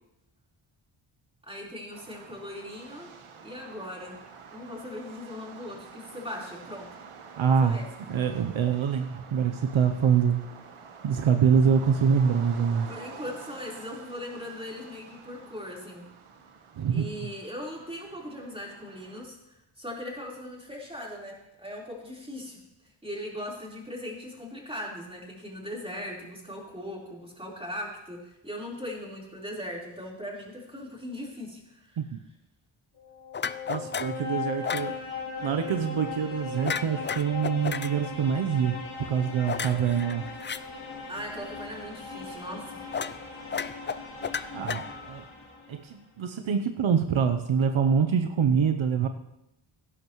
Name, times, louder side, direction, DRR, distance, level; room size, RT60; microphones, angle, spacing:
voice 1, 1.4-3.1 3.4-4.2 4.5-6.9 7.6-7.9 12.9-16.0 16.9-22.6 23.0-32.0 41.1-42.8, left 1 dB, 10° right, -3 dB, 4.0 m, -39 dB
sound 1, 1.9-19.3, right 6 dB, 90° right, 1.3 m, -48 dB
voice 2, 7.4-7.8 8.1-10.5 11.0-12.9 16.8-17.1 32.0-32.2 33.7-35.0 35.4-40.2 44.5-45.2 45.7-49.1, right 7 dB, 70° right, 7 dB, 0.8 m, -25 dB
sound 2, 33.0-45.8, left 4 dB, 80° left, 2.5 m, -39 dB
sound 3, 33.3-34.2 34.6-34.9 36.6-37.9 39.5-40.6 42.9-43.2 43.5-45.2, left 6 dB, 25° left, 0.4 m, -33 dB
17.0 x 11.0 x 3.1 m, 0.87 s
cardioid pair, 70°, 49 cm